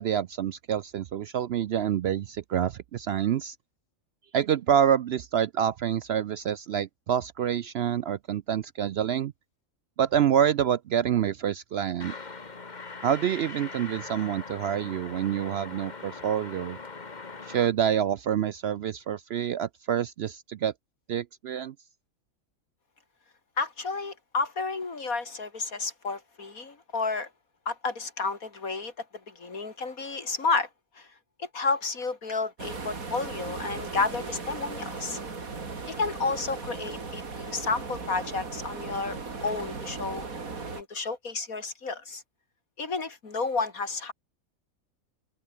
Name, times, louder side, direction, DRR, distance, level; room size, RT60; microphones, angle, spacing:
voice 1, 0.0-3.6 4.3-9.3 10.0-12.1 13.0-16.8 17.5-20.7 21.1-21.7, right 9 dB, 65° right, 0.7 m, -27 dB
sound 1, 12.0-17.7, left 4 dB, 30° left, 1.6 m, -41 dB
voice 2, 23.6-27.3 27.6-28.9 29.3-30.7 31.0-31.1 31.4-35.2 35.9-40.3 40.7-42.2 42.8-44.1, left 4 dB, 80° left, 3.4 m, -31 dB
sound 2, 32.6-40.8, right 4 dB, 80° right, 3.2 m, -37 dB
open air
omnidirectional pair, 1.5 m